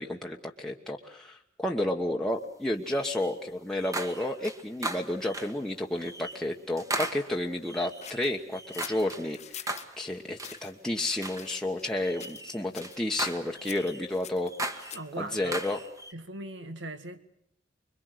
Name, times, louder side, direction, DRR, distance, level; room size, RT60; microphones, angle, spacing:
voice 1, 0.0-15.8, left 1 dB, 5° left, -1 dB, 1.3 m, -31 dB
sound 1, 2.9-3.4 3.8-5.6 6.0-6.4 6.8-9.3 9.7-10.0 10.4-10.6 11.2-11.5 12.0-14.0 14.4-16.1, right 2 dB, 20° right, 1.6 m, -37 dB
sound 2, 8.0-9.9 10.4-10.7 11.3-11.9 12.2-12.5 12.7-13.0 13.6-15.2, left 10 dB, 40° left, 1.1 m, -45 dB
voice 2, 14.9-15.5 16.1-17.2, right 2 dB, 75° right, 9 dB, 2.1 m, -39 dB
25.5 x 23.0 x 8.1 m, 0.71 s
head